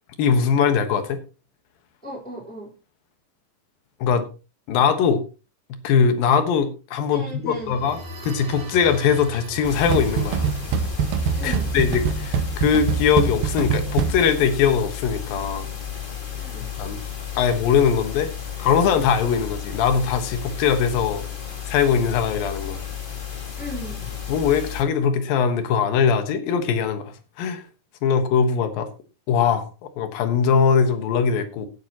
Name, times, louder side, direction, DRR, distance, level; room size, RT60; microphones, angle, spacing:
voice 1, 0.2-1.2 4.0-4.2 4.7-5.2 5.8-10.5 11.4-15.7 16.8-17.0 17.3-18.3 18.6-21.3 21.7-22.8 24.3-27.6 28.0-28.9 29.3-31.7, left 6 dB, 75° left, 3.1 m, -21 dB
voice 2, 2.0-2.7 7.1-7.8 11.3-11.7 16.4-16.7 23.6-24.0, right 1 dB, 5° left, 3.2 m, -36 dB
sound 1, 7.5-13.2, equal, 55° right, 3.6 m, -39 dB
sound 2, 9.6-24.8, left 9 dB, 40° left, 0.7 m, -33 dB
sound 3, 9.9-14.5, right 7 dB, 80° right, 2.7 m, -24 dB
17.5 x 8.5 x 2.9 m
omnidirectional pair, 4.2 m